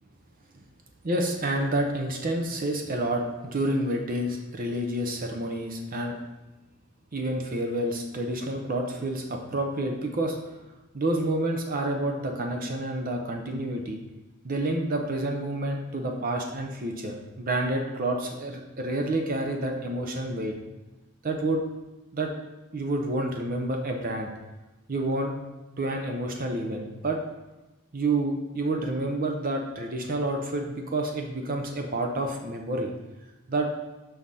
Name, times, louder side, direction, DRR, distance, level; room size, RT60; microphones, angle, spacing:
voice 1, 1.0-6.1 7.1-10.4 10.9-14.0 14.4-20.5 21.2-21.6 22.1-22.3 22.7-24.3 24.9-25.4 25.8-27.2 27.9-32.9 33.5-33.9, right 1 dB, 40° right, 3 dB, 0.6 m, -29 dB
6.1 x 5.7 x 4.1 m, 1.1 s
head